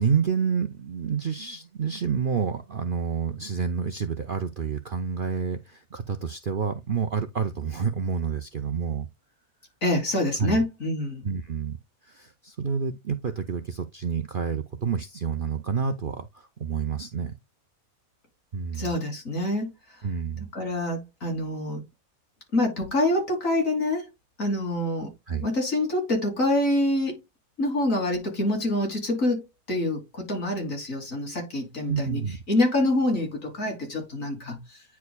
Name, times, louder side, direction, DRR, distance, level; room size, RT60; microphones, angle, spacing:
voice 1, 0.0-9.1 10.4-10.6 11.2-11.8 12.0-17.3 18.5-18.9 20.0-20.5 25.3-25.5 31.9-32.4, right 6 dB, 50° right, 0.6 m, -29 dB
voice 2, 9.8-11.3 18.7-19.7 20.5-21.8 22.5-24.1 24.4-25.1 25.4-27.2 27.6-32.2 32.5-34.8, left 1 dB, 60° left, 3.3 m, -26 dB
9.6 x 4.6 x 2.2 m
omnidirectional pair, 1.5 m